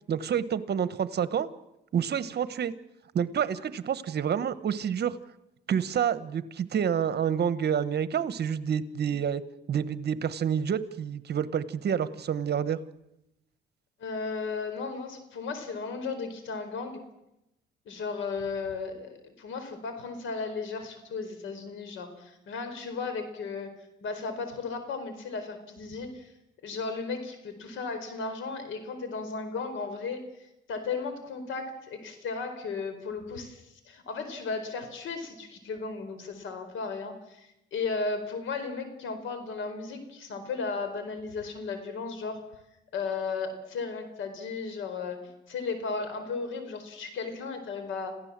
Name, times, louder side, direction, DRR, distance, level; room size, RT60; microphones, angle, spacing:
voice 1, 0.1-1.5 1.9-2.7 3.1-5.2 5.7-9.4 9.7-12.8, right 8 dB, 55° right, 15 dB, 1.2 m, -28 dB
voice 2, 14.0-17.0 17.9-23.7 24.0-26.3 26.6-30.2 30.7-42.4 42.9-48.2, left 4 dB, 75° left, 9 dB, 4.5 m, -35 dB
27.5 x 16.0 x 7.5 m, 0.87 s
cardioid pair, 90°, 20 cm